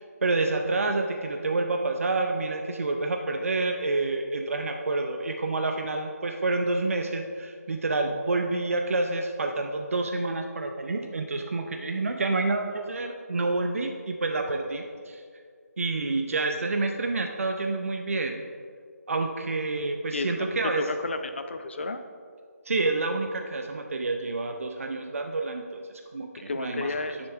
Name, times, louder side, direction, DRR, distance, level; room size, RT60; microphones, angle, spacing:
voice 1, 0.0-15.2 15.8-18.4 19.1-20.8 22.6-26.9, right 3 dB, 55° right, 4 dB, 0.7 m, -28 dB
voice 2, 20.8-22.0 26.5-27.2, left 3 dB, 45° left, 8 dB, 0.6 m, -31 dB
10.5 x 6.8 x 3.5 m, 2.1 s
figure-of-eight pair, 160°, 9 cm